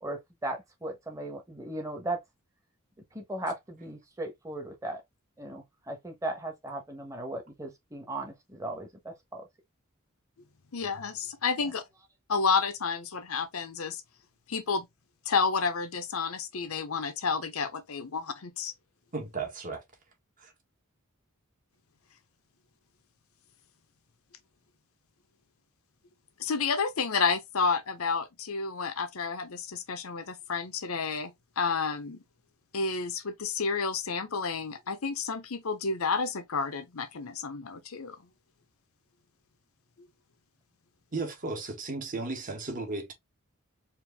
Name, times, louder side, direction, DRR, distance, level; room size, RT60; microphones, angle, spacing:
voice 1, 0.0-2.2 3.1-5.0 5.4-9.4 11.6-11.7, right 1 dB, 15° right, 1.2 m, -37 dB
voice 2, 10.7-11.8 12.3-14.0 14.5-14.9 15.3-18.7 26.4-32.2 32.7-38.2, left 5 dB, 85° left, 0.8 m, -30 dB
voice 3, 19.1-19.8 20.4-20.5 41.1-43.1, right 3 dB, 40° right, 1.4 m, -35 dB
4.5 x 2.6 x 3.4 m
head